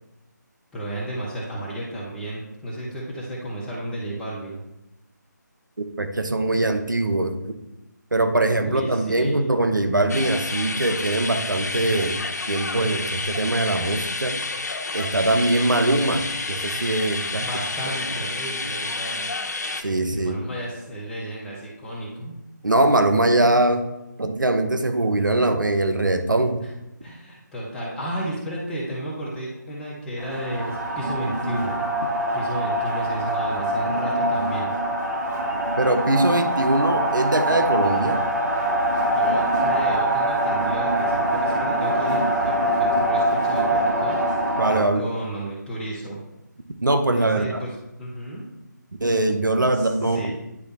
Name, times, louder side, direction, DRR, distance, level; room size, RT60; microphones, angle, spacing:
voice 1, 0.7-4.6 8.7-9.6 17.4-19.3 20.1-22.4 27.0-31.8 32.3-34.8 39.0-44.2 44.7-46.2 47.1-47.7 48.0-48.4 49.7-50.4, right 1 dB, 5° left, -5 dB, 0.9 m, -33 dB
voice 2, 5.8-7.4 8.1-14.4 14.9-17.5 19.8-20.4 22.6-23.9 24.2-26.6 35.8-38.2 44.5-45.0 46.8-47.6 49.0-50.3, right 2 dB, 90° right, 7 dB, 0.9 m, -22 dB
sound 1, 10.1-19.8, left 3 dB, 60° left, 0.8 m, -30 dB
sound 2, 30.2-44.8, right 1 dB, 70° right, 2.0 m, -23 dB
9.7 x 3.3 x 4.1 m, 0.93 s
figure-of-eight pair, 160°, 10 cm